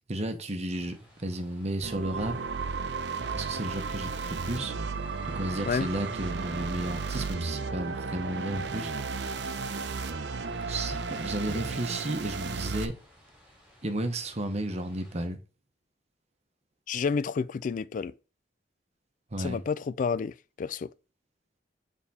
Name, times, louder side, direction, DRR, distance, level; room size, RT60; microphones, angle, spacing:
voice 1, 0.1-2.4 3.3-4.7 5.2-8.9 10.7-13.0 13.8-15.4 19.3-19.6, right 1 dB, 35° right, 0.9 m, -33 dB
sound 1, 0.7-15.3, equal, 5° right, 3.3 m, -58 dB
sound 2, 1.8-12.9, right 4 dB, 65° right, 0.6 m, -34 dB
voice 2, 16.9-18.1 19.4-20.9, left 5 dB, 45° left, 0.3 m, -30 dB
6.5 x 3.6 x 4.2 m
head